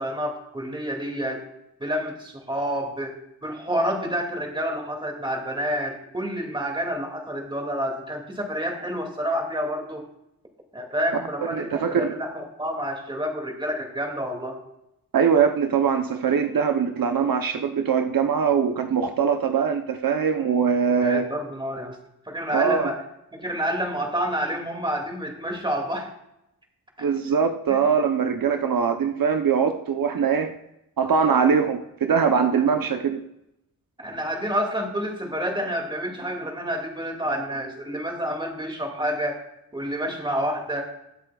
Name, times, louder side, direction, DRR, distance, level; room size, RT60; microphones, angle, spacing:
voice 1, 0.0-1.4 1.8-10.0 10.7-14.6 21.0-22.0 22.3-23.0 23.3-26.1 27.0-27.1 27.7-27.8 34.0-39.4 39.7-40.9, equal, 15° right, 2 dB, 2.4 m, -29 dB
voice 2, 11.5-12.1 15.1-21.3 22.5-22.9 27.0-30.5 31.0-33.2, right 6 dB, 75° right, 6 dB, 0.9 m, -22 dB
21.0 x 8.0 x 2.4 m, 0.84 s
wide cardioid pair, 100°, 35 cm